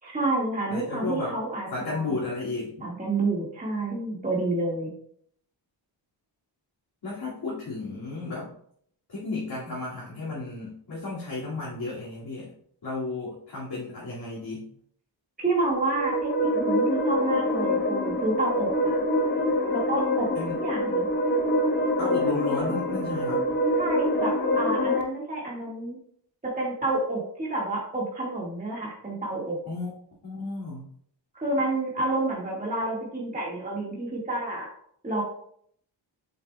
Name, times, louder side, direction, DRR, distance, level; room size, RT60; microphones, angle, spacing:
voice 1, 0.0-2.1 2.8-4.9 15.4-19.0 19.7-20.3 20.6-21.1 23.8-26.0 26.4-29.6 31.3-34.7 35.0-35.2, right 2 dB, 20° right, -4 dB, 1.7 m, -29 dB
voice 2, 0.7-1.4 1.7-2.9 7.0-8.5 9.1-12.5 12.8-14.7 20.3-20.6 22.0-23.5 29.7-29.9 30.2-30.9, left 3 dB, 55° left, -7 dB, 2.2 m, -33 dB
sound 1, 15.6-25.0, left 1 dB, 25° left, 0.8 m, -25 dB
7.8 x 6.8 x 2.2 m, 0.64 s
wide cardioid pair, 135°, 46 cm